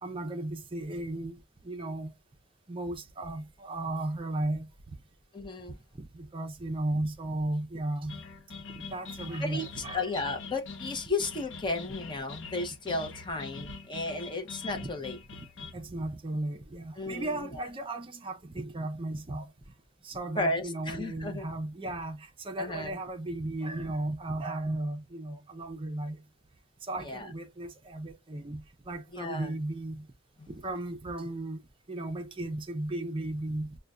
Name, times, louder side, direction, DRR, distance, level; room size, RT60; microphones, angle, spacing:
voice 1, 0.0-2.1 2.7-5.0 5.9-8.2 8.7-10.0 14.8-14.9 15.7-19.5 20.0-26.2 26.8-30.1 30.5-31.6 31.9-33.8, right 1 dB, 25° right, 0.5 m, -35 dB
voice 2, 5.3-5.8 9.4-9.6 9.9-15.2 17.0-17.5 20.4-21.5 22.6-23.0 27.0-27.3 29.1-29.5, left 2 dB, 25° left, 0.6 m, -34 dB
sound 1, 8.1-15.7, left 4 dB, 65° left, 0.7 m, -44 dB
6.3 x 2.2 x 2.3 m
head